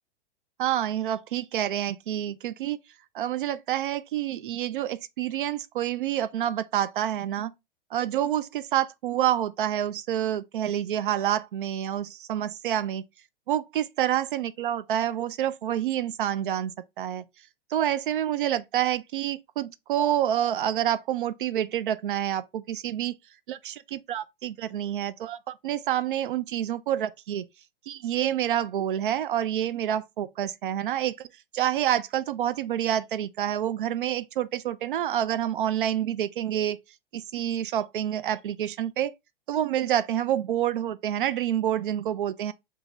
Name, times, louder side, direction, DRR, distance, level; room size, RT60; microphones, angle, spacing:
voice 1, 0.6-2.8 3.1-7.5 7.9-13.0 13.5-17.2 17.7-23.1 23.5-27.5 27.9-31.3 31.5-36.8 37.1-39.1 39.5-42.5, right 11 dB, 60° right, 0.5 m, -28 dB
3.7 x 2.8 x 2.9 m
figure-of-eight pair, 100°, 29 cm